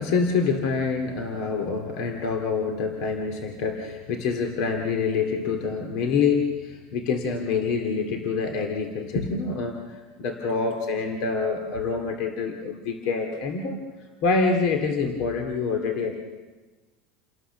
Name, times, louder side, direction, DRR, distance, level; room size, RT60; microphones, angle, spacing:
voice 1, 0.0-13.8 14.2-16.1, left 4 dB, 60° left, 4 dB, 2.4 m, -26 dB
28.5 x 18.5 x 6.9 m, 1.3 s
supercardioid pair, 145°, 0 cm